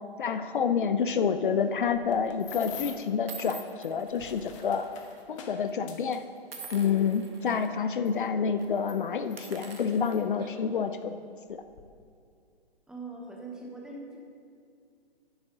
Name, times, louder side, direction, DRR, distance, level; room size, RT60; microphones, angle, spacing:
voice 1, 0.2-4.9 5.3-6.2 6.7-11.2 11.5-11.6, left 6 dB, 55° left, 10 dB, 0.5 m, -28 dB
sound 1, 1.6-1.9 2.6-2.7 3.3-5.2 5.5-5.7 6.5-7.7 8.1-8.3 8.6-8.7 9.2-10.8, right 4 dB, 65° right, 1.6 m, -47 dB
sound 2, 1.8-3.2 3.9-7.2 8.1-8.2 8.7-10.2 11.0-11.1 11.5-11.8, left 8 dB, 30° left, 1.0 m, -46 dB
voice 2, 12.9-14.2, right 3 dB, ahead, -2 dB, 0.7 m, -41 dB
10.5 x 9.0 x 3.9 m, 2.3 s
figure-of-eight pair, 130°, 31 cm